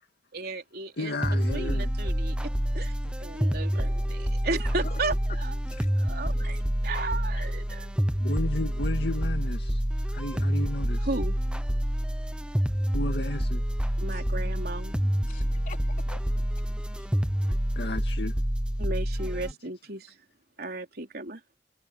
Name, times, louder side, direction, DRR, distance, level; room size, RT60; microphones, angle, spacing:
voice 1, 0.3-1.1 1.5-2.4 2.7-5.5 6.0-7.9 11.0-11.4 14.0-15.1 18.8-20.1 20.6-21.4, right 3 dB, 60° right, 3.7 m, -35 dB
voice 2, 1.0-1.9 3.0-3.1 7.3-7.5 8.2-11.2 12.9-13.6 15.1-15.2 17.8-18.4, left 1 dB, 70° left, 2.2 m, -34 dB
sound 1, 1.2-19.5, equal, 5° right, 1.0 m, -28 dB
voice 3, 3.1-3.7 4.0-5.4 5.6-6.6 14.1-14.4 15.2-17.1, left 3 dB, 50° left, 4.4 m, -49 dB
head